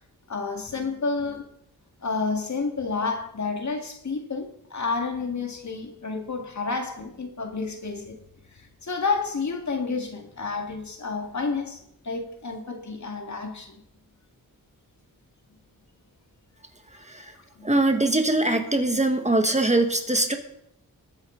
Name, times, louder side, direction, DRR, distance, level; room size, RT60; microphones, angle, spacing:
voice 1, 0.3-1.5 2.0-8.2 8.5-11.8 12.0-13.7 17.6-17.8, left 4 dB, 50° left, 2.2 m, -30 dB
voice 2, 17.6-20.3, right 2 dB, 20° right, 1.6 m, -22 dB
21.0 x 8.0 x 3.9 m
cardioid pair, 65°, 36 cm